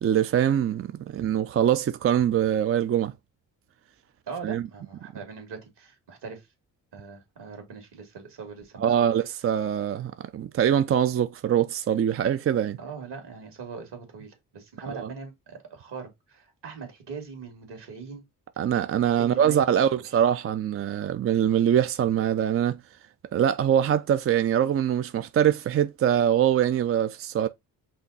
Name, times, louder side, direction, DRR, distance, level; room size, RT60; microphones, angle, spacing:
voice 1, 0.0-3.1 4.4-4.7 8.8-12.8 15.0-15.1 18.6-22.8 23.3-27.5, right 9 dB, 30° right, 0.4 m, -23 dB
voice 2, 4.3-6.5 6.9-9.1 12.8-18.2 19.2-19.6 19.9-20.0, right 5 dB, 60° right, 2.2 m, -41 dB
5.5 x 2.3 x 3.9 m
hypercardioid pair, 40°, 46 cm